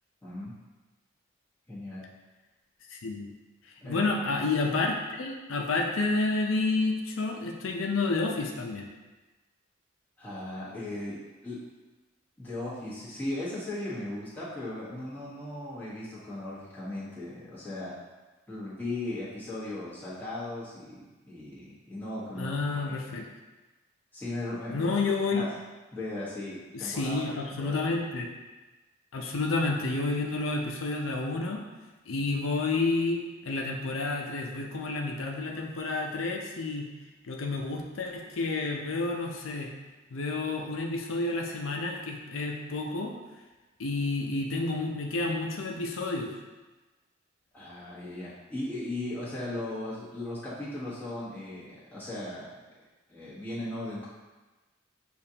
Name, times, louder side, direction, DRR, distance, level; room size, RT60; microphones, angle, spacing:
voice 1, 0.2-0.6 1.7-2.0 3.8-4.1 10.2-11.6 12.4-17.9 18.5-22.9 24.1-25.5 25.9-27.8 47.5-52.6 53.1-54.1, left 1 dB, 10° left, -10 dB, 1.3 m, -37 dB
voice 2, 2.9-3.3 3.8-8.9 22.4-23.3 24.7-25.4 26.7-28.3 29.1-31.6 32.1-36.9 37.2-39.7 40.1-43.1 43.8-46.3, left 3 dB, 90° left, 0 dB, 0.6 m, -30 dB
6.9 x 2.5 x 2.8 m, 1.2 s
head